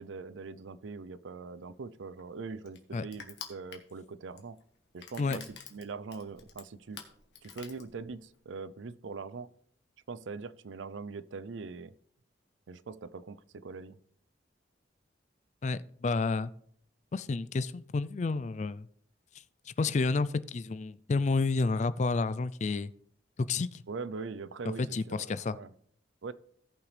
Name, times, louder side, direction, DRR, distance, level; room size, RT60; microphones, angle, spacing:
voice 1, 0.0-4.6 4.9-7.0 7.4-9.5 10.1-11.9 12.7-14.0 23.9-25.7 26.2-26.3, right 4 dB, 85° right, 16 dB, 0.5 m, -42 dB
Crushing, 1.6-8.4, left 7 dB, 65° left, 1.5 m, -49 dB
voice 2, 15.6-16.5 17.1-18.9 19.7-22.9 23.4-23.8 24.8-25.6, left 3 dB, 40° left, 16 dB, 0.3 m, -30 dB
17.0 x 5.9 x 3.3 m, 0.64 s
head